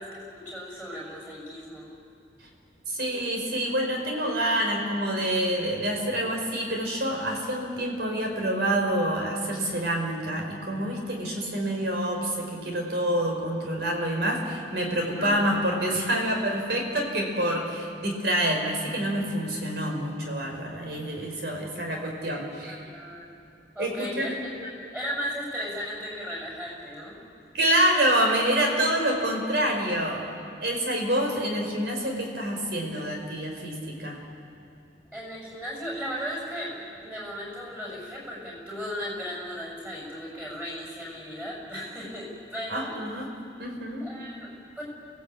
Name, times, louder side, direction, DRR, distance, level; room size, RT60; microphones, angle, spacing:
voice 1, 0.0-1.9 15.2-15.5 22.7-23.2 23.7-24.5 24.9-27.1 35.1-42.9 44.0-44.8, equal, 10° right, -3 dB, 6.6 m, -36 dB
voice 2, 2.9-22.8 23.8-24.3 27.5-30.2 30.6-34.2 42.7-43.3 43.6-44.1, right 1 dB, 65° right, 1 dB, 4.6 m, -27 dB
28.5 x 17.5 x 8.5 m, 2.5 s
head